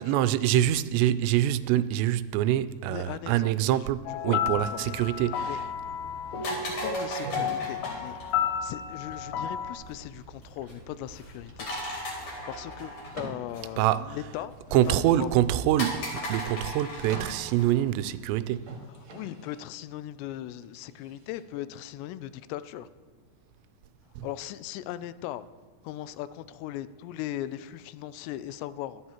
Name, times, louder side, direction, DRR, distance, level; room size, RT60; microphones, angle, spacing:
voice 1, 0.0-5.6 13.8-14.2 14.7-18.7 24.2-24.3, right 13 dB, 90° right, 2.8 m, -25 dB
voice 2, 0.5-1.0 2.9-4.9 5.4-5.6 6.4-8.2 8.6-11.7 12.5-15.3 19.1-22.9 24.2-25.5 25.8-29.0, left 13 dB, 90° left, 2.7 m, -39 dB
sound 1, 4.1-9.8, left 7 dB, 75° left, 2.6 m, -32 dB
sound 2, 4.6-18.3, equal, 45° left, 4.4 m, -39 dB
sound 3, 4.9-5.4 6.3-7.5 8.7-9.9 11.3-11.8 12.1-12.2 13.1-13.5 14.5-15.5 16.5-17.5 18.5-19.7 20.6-21.4, right 3 dB, 45° right, 1.9 m, -45 dB
25.0 x 10.0 x 3.0 m
omnidirectional pair, 4.9 m